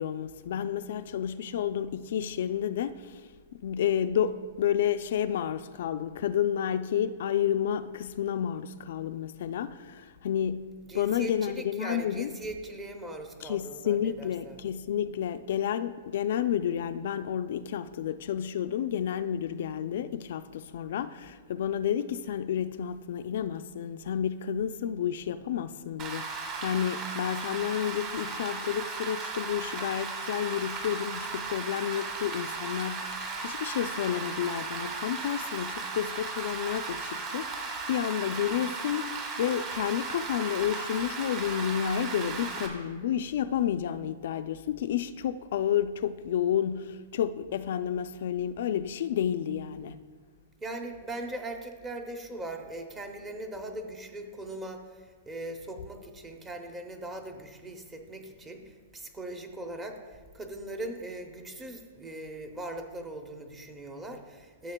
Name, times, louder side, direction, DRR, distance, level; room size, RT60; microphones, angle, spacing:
voice 1, 0.0-3.2 3.6-10.7 10.9-12.3 13.4-33.1 33.4-50.0, left 9 dB, 65° left, 0.3 m, -30 dB
voice 2, 10.8-14.6 50.6-64.7, right 1 dB, 15° right, 0.6 m, -40 dB
Rain, 26.0-42.7, right 4 dB, 30° right, 1.3 m, -36 dB
13.0 x 7.1 x 2.2 m
hypercardioid pair, 155°, 0 cm